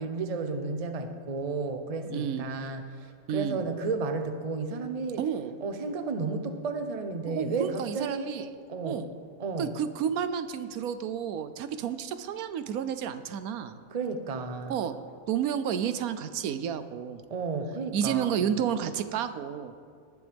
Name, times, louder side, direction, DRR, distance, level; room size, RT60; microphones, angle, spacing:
voice 1, 0.0-5.2 5.6-9.0 9.4-9.7 13.9-14.7 17.3-18.4, right 4 dB, 35° right, 7 dB, 0.7 m, -33 dB
voice 2, 2.0-2.5 3.3-3.6 5.2-5.5 7.3-8.5 8.8-9.1 9.6-13.8 14.7-15.0 15.3-17.2 17.9-19.7, right 8 dB, 85° right, 11 dB, 1.1 m, -31 dB
19.5 x 10.5 x 3.5 m, 2.1 s
omnidirectional pair, 1.5 m